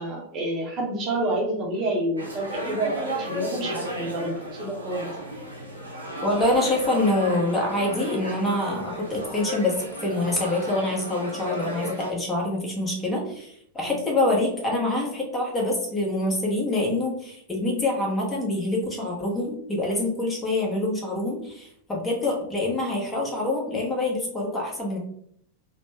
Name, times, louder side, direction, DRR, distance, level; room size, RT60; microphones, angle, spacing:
voice 1, 0.0-5.1 13.8-14.0, right 1 dB, 35° right, -1 dB, 0.8 m, -29 dB
sound 1, 2.2-12.1, right 1 dB, 80° right, 0.8 m, -34 dB
voice 2, 6.2-25.0, left 2 dB, 15° left, -2 dB, 1.1 m, -26 dB
3.1 x 2.1 x 3.2 m, 0.68 s
figure-of-eight pair, 90°, 0 cm